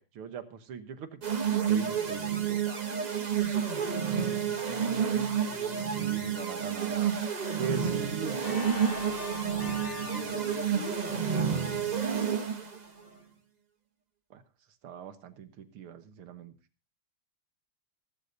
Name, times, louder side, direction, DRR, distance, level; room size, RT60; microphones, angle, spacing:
voice 1, 0.0-1.4 1.7-2.9 5.8-7.2 7.6-8.4 10.2-10.3 14.3-14.4 14.8-16.5, right 7 dB, 80° right, 9 dB, 2.1 m, -41 dB
sound 1, 1.2-12.8, right 7 dB, 40° right, 0.6 m, -30 dB
voice 2, 4.3-6.8 7.8-8.4 10.0-12.2, left 2 dB, 55° left, 2 dB, 4.1 m, -46 dB
Organ, 8.4-13.2, left 3 dB, 35° left, 6.3 m, -44 dB
17.5 x 15.0 x 2.7 m, 0.32 s
omnidirectional pair, 2.4 m